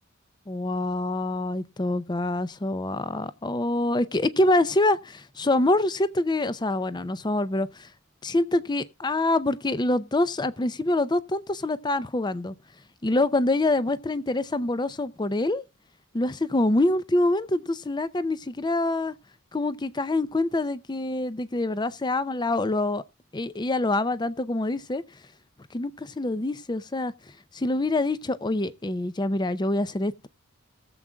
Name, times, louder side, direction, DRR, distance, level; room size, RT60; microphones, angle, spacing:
voice 1, 0.5-7.9 8.2-12.5 13.0-15.6 16.1-19.1 19.5-23.0 23.3-25.0 25.7-27.1 27.5-30.3, left 2 dB, 20° left, 0.5 m, -25 dB
21.0 x 7.5 x 2.3 m
head